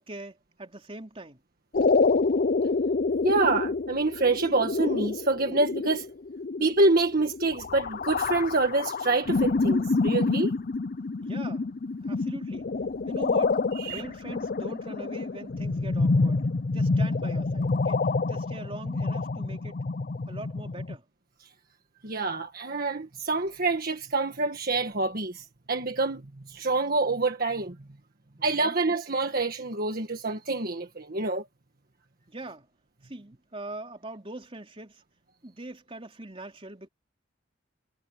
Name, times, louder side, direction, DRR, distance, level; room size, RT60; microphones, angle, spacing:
voice 1, 0.0-1.4 11.2-11.7 12.0-12.7 13.1-16.4 16.7-19.8 20.3-21.1 28.4-28.7 32.3-32.7 33.0-35.0 35.4-36.9, right 2 dB, 30° right, 3.5 m, -42 dB
sound 1, 1.7-21.0, left 3 dB, 45° left, 0.5 m, -27 dB
voice 2, 3.2-6.1 6.6-10.5 13.7-14.0 22.0-27.8 28.4-31.5, right 3 dB, 50° right, 1.6 m, -26 dB
head